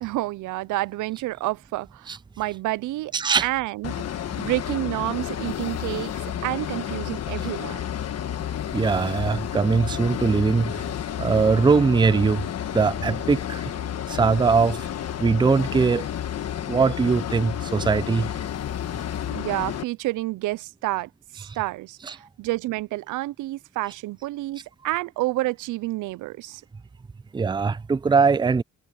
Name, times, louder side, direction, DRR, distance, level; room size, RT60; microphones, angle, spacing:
voice 1, 0.0-3.1 3.4-3.9 4.4-7.8 19.3-26.6, right 18 dB, 85° right, 0.6 m, -29 dB
voice 2, 3.1-3.5 8.7-10.8 11.2-12.5 12.7-13.6 14.1-14.8 15.2-16.1 16.7-18.3 22.1-22.2 27.3-28.6, right 5 dB, 15° right, 0.5 m, -21 dB
sound 1, 3.8-19.8, left 10 dB, 55° left, 1.4 m, -31 dB
cardioid pair, 90°, 30 cm